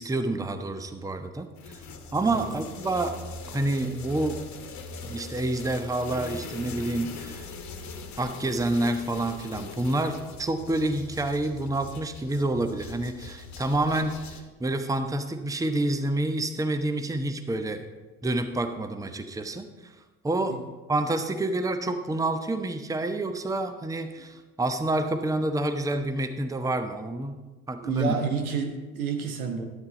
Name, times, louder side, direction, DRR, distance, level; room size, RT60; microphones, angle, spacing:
voice 1, 0.0-1.8 2.1-3.2 3.5-4.4 5.0-7.5 8.2-17.9 18.2-20.0 20.2-20.6 20.9-27.4 27.7-28.1, right 2 dB, 10° right, 8 dB, 0.8 m, -28 dB
sound 1, 1.6-14.4, left 3 dB, 40° left, 1.5 m, -41 dB
voice 2, 27.8-29.7, right 5 dB, 75° right, 5 dB, 1.2 m, -29 dB
12.0 x 8.8 x 4.0 m, 1.2 s
figure-of-eight pair, 55°, 43 cm